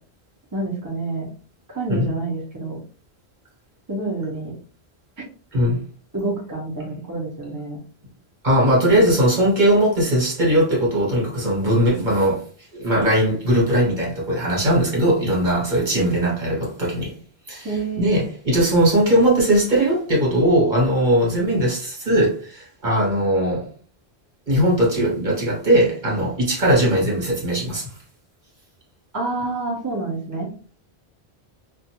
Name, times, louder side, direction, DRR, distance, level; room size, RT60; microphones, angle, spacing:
voice 1, 0.5-1.3 1.7-2.8 3.9-4.5 6.1-7.8 17.6-18.2 29.1-30.5, right 3 dB, 20° right, 0.6 m, -27 dB
voice 2, 8.4-12.4 12.7-17.1 17.5-17.7 18.0-23.7 24.5-27.9, right 1 dB, 45° right, 1.2 m, -19 dB
2.5 x 2.3 x 2.8 m
omnidirectional pair, 1.1 m